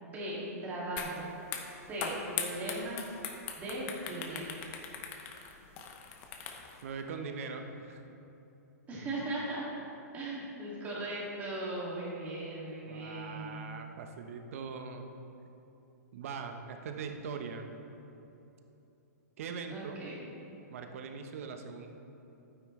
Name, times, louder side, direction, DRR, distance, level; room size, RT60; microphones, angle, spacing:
voice 1, 0.0-1.3 1.9-3.0 3.6-4.5 8.9-9.6 10.1-13.8 19.7-20.2, right 1 dB, 20° right, -6 dB, 2.3 m, -38 dB
sound 1, 1.0-1.1 1.4-6.8, left 7 dB, 25° left, 0.8 m, -40 dB
voice 2, 6.8-8.0 12.9-15.1 16.1-17.6 19.4-20.0 20.7-21.9, right 5 dB, 55° right, 5 dB, 1.0 m, -41 dB
12.0 x 9.5 x 3.3 m, 2.9 s
hypercardioid pair, 155°, 9 cm